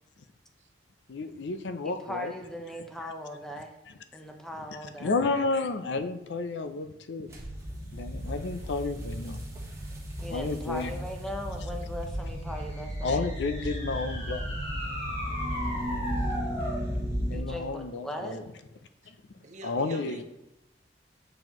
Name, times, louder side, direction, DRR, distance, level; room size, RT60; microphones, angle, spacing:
voice 1, 1.1-2.3 5.0-7.3 7.9-9.4 10.3-10.9 13.0-14.4 17.3-18.4 19.1-19.2 19.6-20.2, left 3 dB, 75° left, 10 dB, 0.5 m, -31 dB
voice 2, 1.8-3.7 4.1-5.1 10.2-13.2 17.3-18.4, equal, 5° left, 2 dB, 0.7 m, -39 dB
sound 1, 7.3-17.4, equal, 15° right, 1.1 m, -35 dB
sound 2, 12.5-16.9, equal, 35° left, 1.3 m, -37 dB
voice 3, 15.8-16.3 19.4-20.2, right 2 dB, 40° right, 5 dB, 0.6 m, -47 dB
6.9 x 5.7 x 3.0 m, 0.89 s
head